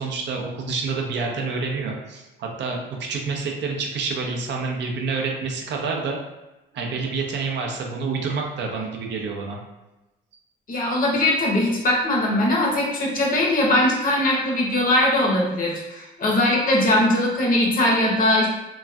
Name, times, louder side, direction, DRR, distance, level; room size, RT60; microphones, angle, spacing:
voice 1, 0.0-6.2 6.7-9.6, right 4 dB, 65° right, 1 dB, 0.5 m, -28 dB
voice 2, 10.7-18.5, left 1 dB, 45° left, -3 dB, 0.9 m, -20 dB
3.0 x 2.5 x 2.3 m, 1.0 s
cardioid pair, 90°, 20 cm